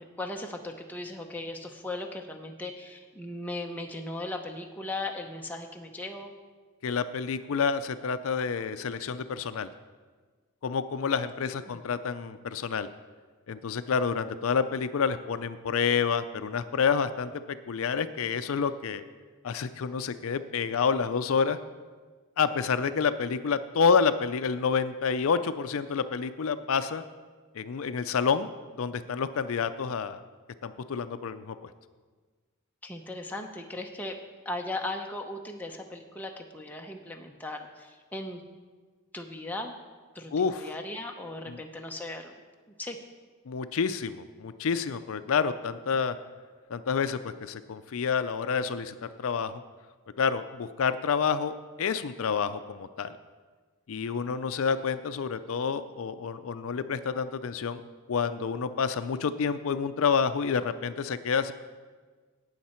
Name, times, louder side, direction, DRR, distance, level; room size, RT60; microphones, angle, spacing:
voice 1, 0.0-6.3 11.4-11.6 32.8-34.2 34.4-38.4 39.1-39.8 40.1-42.3 42.8-43.0, left 2 dB, 10° left, 2 dB, 0.7 m, -37 dB
voice 2, 6.8-9.7 10.6-12.9 13.5-19.0 19.4-21.6 22.4-27.0 27.6-28.5 28.8-30.2 30.6-31.6 40.3-40.7 41.5-41.6 43.5-46.2 46.7-49.6 50.2-53.2 53.9-57.8 58.1-61.5, left 6 dB, 75° left, 12 dB, 0.4 m, -28 dB
17.5 x 6.5 x 4.4 m, 1.4 s
head